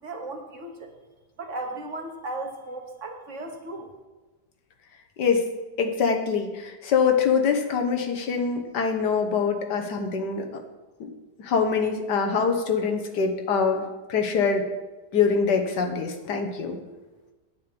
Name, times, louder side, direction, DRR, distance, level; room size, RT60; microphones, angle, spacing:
voice 1, 0.0-0.9 1.4-3.9, right 2 dB, 50° right, 3 dB, 1.3 m, -36 dB
voice 2, 5.8-10.4 11.0-11.1 11.4-14.7 15.1-16.8, left 5 dB, 80° left, 4 dB, 1.7 m, -24 dB
9.3 x 7.4 x 5.2 m, 1.2 s
omnidirectional pair, 1.8 m